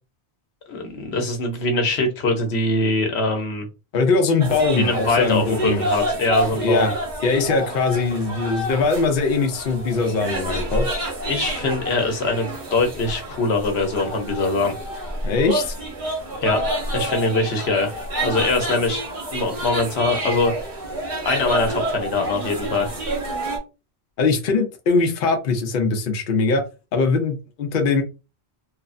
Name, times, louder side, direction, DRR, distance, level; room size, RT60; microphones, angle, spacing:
voice 1, 0.7-3.6 4.8-6.9 11.2-14.8 16.4-16.6 16.9-17.9 18.2-19.0 19.3-20.7 21.2-22.9, left 2 dB, 80° left, 4 dB, 1.0 m, -22 dB
voice 2, 3.9-5.8 6.6-6.9 7.2-10.9 15.2-15.7 24.2-26.6 26.9-28.0, left 4 dB, 60° left, 4 dB, 0.7 m, -21 dB
sound 1, 4.4-23.6, right 1 dB, 50° right, 1.0 m, -28 dB
3.2 x 2.0 x 2.4 m, 0.29 s
omnidirectional pair, 1.1 m